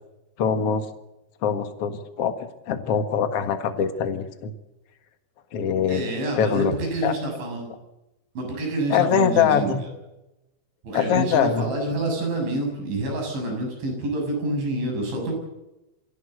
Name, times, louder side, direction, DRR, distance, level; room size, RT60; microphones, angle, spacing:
voice 1, 0.4-0.8 1.4-2.3 2.7-4.5 5.5-6.0 6.4-6.7 7.0-7.1 8.9-9.8 10.9-11.6, left 7 dB, 60° left, 8 dB, 1.5 m, -23 dB
voice 2, 5.9-7.7 8.4-9.7 10.8-15.3, right 1 dB, 75° right, 2 dB, 9.4 m, -27 dB
25.5 x 16.5 x 8.0 m, 0.96 s
omnidirectional pair, 5.3 m